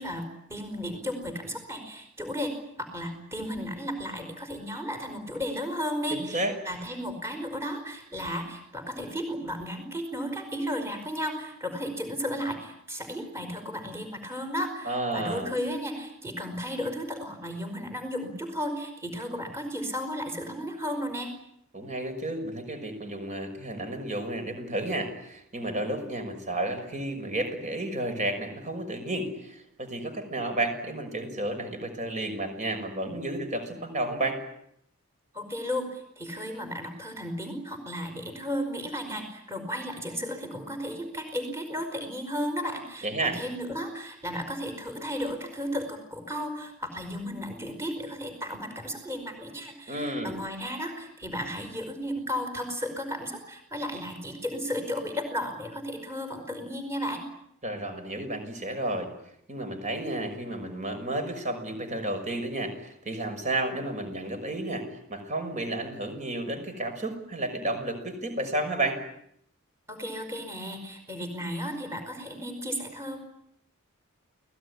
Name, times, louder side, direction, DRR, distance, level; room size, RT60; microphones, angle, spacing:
voice 1, 0.0-2.5 2.8-21.3 35.3-57.2 69.9-73.2, equal, 15° right, 5 dB, 5.0 m, -34 dB
voice 2, 6.1-6.5 14.8-15.5 21.7-34.4 43.0-43.4 49.9-50.4 57.6-59.1 59.5-69.0, right 1 dB, 35° right, 7 dB, 6.0 m, -32 dB
29.0 x 19.5 x 9.9 m, 0.74 s
head